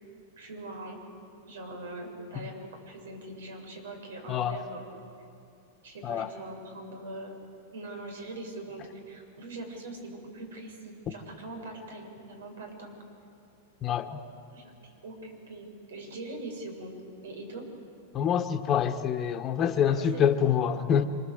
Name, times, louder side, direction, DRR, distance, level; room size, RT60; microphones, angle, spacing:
voice 1, 0.4-1.0 1.5-5.0 5.8-7.4 7.7-13.0 14.5-17.7 19.9-20.3, right 2 dB, 85° right, 3 dB, 7.2 m, -42 dB
voice 2, 13.8-14.2 18.1-21.0, left 8 dB, 25° left, 7 dB, 1.5 m, -26 dB
28.0 x 25.0 x 8.1 m, 2.6 s
supercardioid pair, 140°, 0 cm